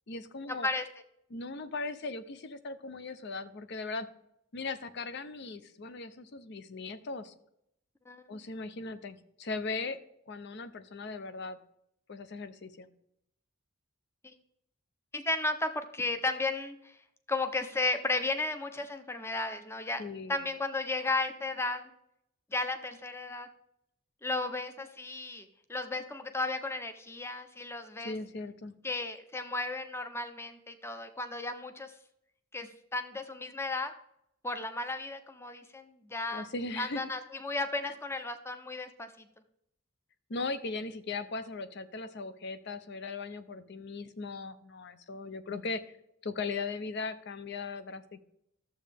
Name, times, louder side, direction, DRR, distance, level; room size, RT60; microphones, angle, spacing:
voice 1, 0.1-0.7 1.3-4.1 4.5-7.3 8.3-10.0 10.3-11.6 12.1-12.9 20.0-20.4 28.0-28.7 36.3-37.1 37.8-37.9 40.3-45.8 46.2-48.2, left 3 dB, 55° left, 13 dB, 0.6 m, -38 dB
voice 2, 8.1-8.4 15.1-16.9 17.3-20.0 20.3-21.9 22.5-23.5 24.2-28.1 28.8-31.9 32.5-33.9 34.4-36.5 36.8-39.1, left 2 dB, 10° left, 9 dB, 0.6 m, -34 dB
12.0 x 7.4 x 3.4 m, 0.78 s
head